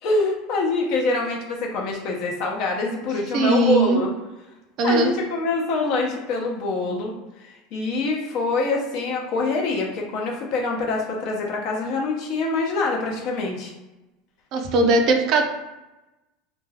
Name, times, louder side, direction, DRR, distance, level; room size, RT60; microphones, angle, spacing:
voice 1, 0.0-4.1 4.8-13.7, left 3 dB, 55° left, -1 dB, 0.7 m, -25 dB
voice 2, 3.3-4.0 4.8-5.1 14.5-15.4, right 2 dB, 50° right, 4 dB, 0.4 m, -19 dB
2.5 x 2.3 x 3.3 m, 1.0 s
supercardioid pair, 145°, 0 cm